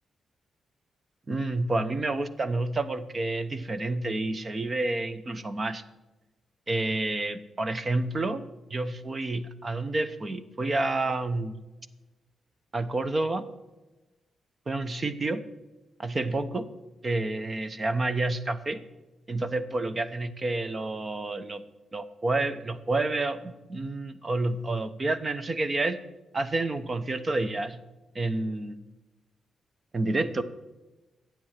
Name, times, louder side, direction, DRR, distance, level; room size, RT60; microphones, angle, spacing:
voice 1, 1.3-5.8 6.7-8.4 8.7-11.6 12.7-13.4 14.7-15.4 16.0-16.7 17.0-18.8 19.3-21.6 21.9-26.0 26.3-27.8 28.1-28.8 29.9-30.4, right 2 dB, 30° right, 13 dB, 0.8 m, -29 dB
12.5 x 8.8 x 7.4 m, 1.1 s
wide cardioid pair, 145°, 0 cm